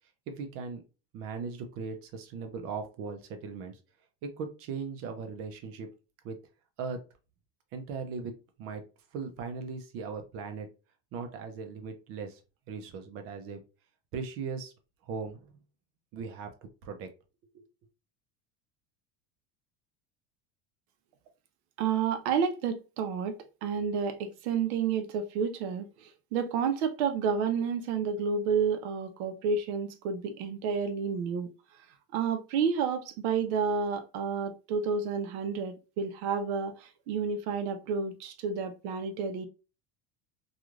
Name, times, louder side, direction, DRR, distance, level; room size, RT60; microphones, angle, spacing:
voice 1, 0.3-0.8 1.1-3.8 4.2-5.9 6.2-6.4 6.8-7.0 7.7-8.3 8.6-8.8 9.1-10.7 11.1-12.4 12.7-13.6 14.1-14.7 15.0-15.6 16.1-17.1 17.5-17.6, right 5 dB, 45° right, 0.6 m, -38 dB
voice 2, 21.8-31.5 32.1-39.5, right 6 dB, 85° right, 0.7 m, -30 dB
3.0 x 2.4 x 2.4 m
cardioid pair, 165°, 33 cm